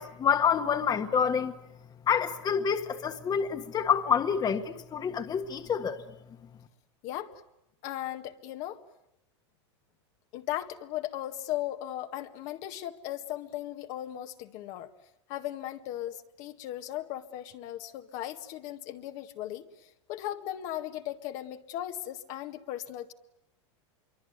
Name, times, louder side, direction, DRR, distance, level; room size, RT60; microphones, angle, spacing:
voice 1, 0.0-1.5 2.1-6.0, left 7 dB, 25° left, 1.6 m, -27 dB
voice 2, 7.0-7.4 7.8-8.8 10.3-14.9 15.3-19.7 20.1-23.1, left 13 dB, 55° left, 1.9 m, -37 dB
26.0 x 24.0 x 9.5 m
hypercardioid pair, 115°, 15 cm